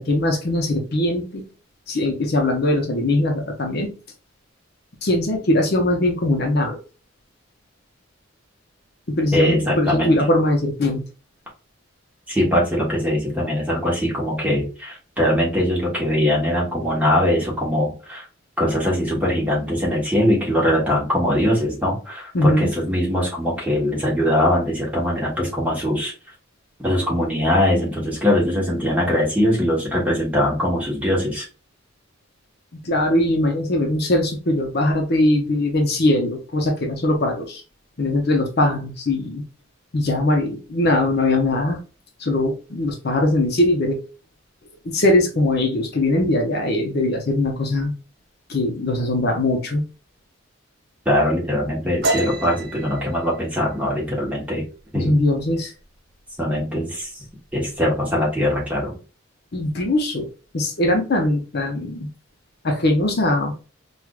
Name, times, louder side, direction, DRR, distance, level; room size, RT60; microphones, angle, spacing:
voice 1, 0.0-1.4 1.9-3.9 5.0-6.8 9.1-11.0 22.3-22.7 32.8-37.6 38.0-39.4 39.9-41.8 42.2-44.0 44.8-47.9 48.5-49.8 54.9-55.7 59.5-60.3 60.5-62.1 62.6-63.5, left 1 dB, 50° left, 3 dB, 0.7 m, -21 dB
voice 2, 9.3-10.2 12.3-18.2 18.6-26.1 26.8-31.5 51.0-54.6 54.9-55.1 56.4-57.2 57.5-58.9, left 1 dB, 10° right, -4 dB, 1.2 m, -21 dB
sound 1, 52.0-55.5 55.8-56.1 56.5-57.0 57.3-58.0, right 2 dB, 50° right, 1.2 m, -29 dB
4.6 x 2.4 x 2.4 m, 0.34 s
head